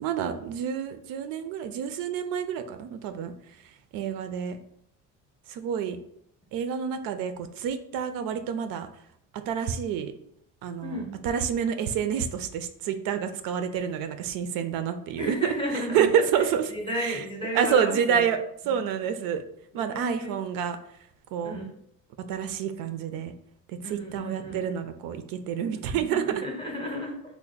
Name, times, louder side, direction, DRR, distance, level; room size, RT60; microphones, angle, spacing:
voice 1, 0.0-3.3 3.9-4.6 5.5-6.0 6.5-8.9 9.3-10.1 10.6-15.5 15.9-16.7 17.0-17.2 17.5-18.4 18.7-19.4 19.7-20.8 21.3-21.6 22.3-23.3 23.7-26.2, right 8 dB, 85° right, 9 dB, 0.5 m, -28 dB
voice 2, 10.8-11.1 15.2-18.3 18.6-18.9 19.7-20.3 21.4-21.8 23.8-24.6 26.1-27.4, equal, 15° left, 0 dB, 0.6 m, -34 dB
3.3 x 2.1 x 3.8 m, 0.70 s
cardioid pair, 150°, 33 cm